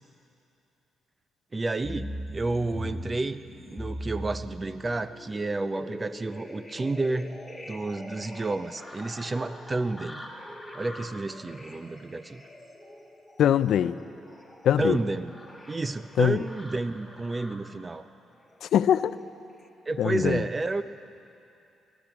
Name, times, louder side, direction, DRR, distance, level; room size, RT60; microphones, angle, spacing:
voice 1, 1.5-7.4 7.7-10.3 10.7-12.4 14.8-15.4 15.7-18.1 19.9-20.8, right 2 dB, 25° right, 12 dB, 0.6 m, -30 dB
sound 1, 1.8-17.7 18.4-19.1 19.5-19.7, equal, 5° left, 2.0 m, -42 dB
voice 2, 13.4-14.0 14.6-15.0 16.2-16.4 18.6-19.2 20.0-20.4, left 10 dB, 70° left, 14 dB, 0.4 m, -22 dB
19.0 x 12.0 x 6.1 m, 2.7 s
cardioid pair, 90°, 0 cm